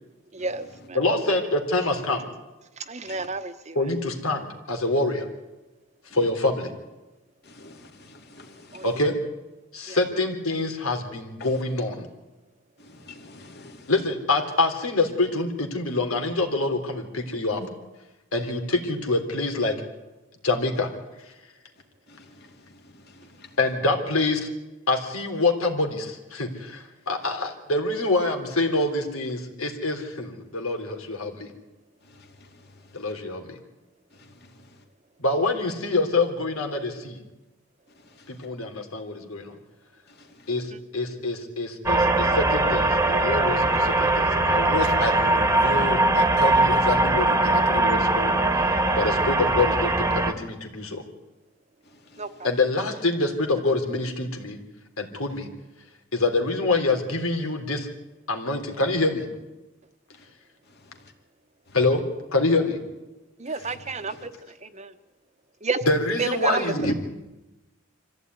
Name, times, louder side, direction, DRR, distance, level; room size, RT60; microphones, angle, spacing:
voice 1, 0.3-1.0 2.9-3.8 8.7-8.8 9.9-10.0 52.2-52.5 63.4-64.3 64.6-64.9 65.6-66.9, right 3 dB, 35° right, 1.1 m, -30 dB
voice 2, 0.9-2.2 3.8-5.3 6.1-6.7 8.8-9.1 9.7-12.1 13.9-17.6 18.3-19.7 20.4-20.9 23.6-24.5 24.9-31.5 32.9-33.6 35.2-37.2 38.3-39.4 40.5-51.0 52.4-54.6 55.0-55.5 56.1-57.9 58.3-59.3 61.7-62.0 62.3-62.8 63.6-63.7 65.9-66.9, left 2 dB, 90° left, 3.5 m, -26 dB
voice 3, 7.5-8.8 12.9-13.3 66.7-66.9, right 1 dB, 50° left, 2.6 m, -35 dB
sound 1, 41.9-50.3, right 2 dB, 10° right, 1.5 m, -21 dB
25.0 x 15.5 x 9.5 m
head